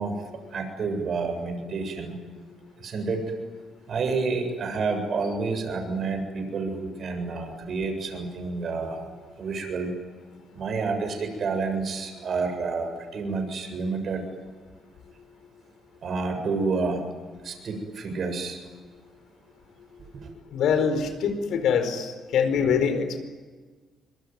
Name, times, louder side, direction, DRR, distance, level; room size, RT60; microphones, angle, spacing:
voice 1, 0.0-2.2 2.8-3.3 3.9-9.1 9.4-9.9 10.6-14.2 16.0-17.1 17.4-18.6 20.2-20.3, right 4 dB, 55° right, 5 dB, 7.5 m, -29 dB
voice 2, 20.5-23.2, left 6 dB, 80° left, 8 dB, 4.6 m, -24 dB
25.5 x 23.0 x 9.5 m, 1.4 s
cardioid pair, 90°, 0 cm